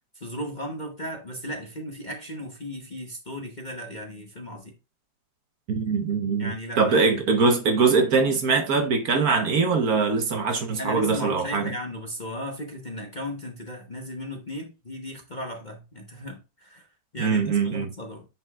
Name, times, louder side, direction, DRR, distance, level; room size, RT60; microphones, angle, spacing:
voice 1, 0.1-4.7 6.4-6.9 10.8-16.9 17.1-18.3, equal, 35° left, 0.9 m, -36 dB
voice 2, 5.7-11.7 17.2-17.9, right 4 dB, 60° right, 1.4 m, -22 dB
7.8 x 6.0 x 2.3 m
omnidirectional pair, 1.9 m